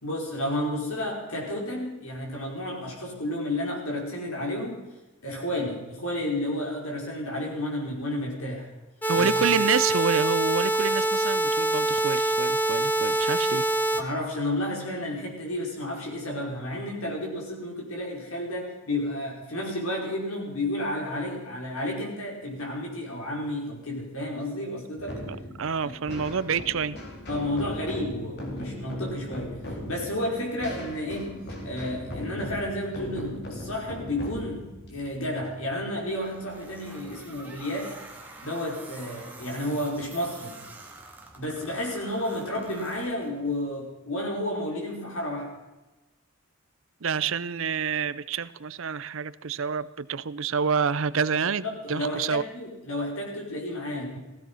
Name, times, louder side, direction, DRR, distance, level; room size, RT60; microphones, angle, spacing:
voice 1, 0.0-4.8 5.2-8.7 9.1-9.4 14.0-25.2 25.8-25.9 27.3-31.4 31.6-38.0 38.4-40.6 41.3-45.5 51.6-54.2, left 1 dB, 75° left, -1 dB, 5.3 m, -31 dB
sound 1, 9.0-14.0, right 1 dB, 10° left, 0.9 m, -25 dB
voice 2, 9.0-13.7 25.3-27.0 47.0-52.4, right 6 dB, 60° right, 17 dB, 0.6 m, -28 dB
sound 2, 25.0-36.4, left 1 dB, 50° left, 4.1 m, -38 dB
sound 3, 36.1-43.6, right 2 dB, 10° right, 2.0 m, -46 dB
16.0 x 16.0 x 5.7 m, 1.1 s
head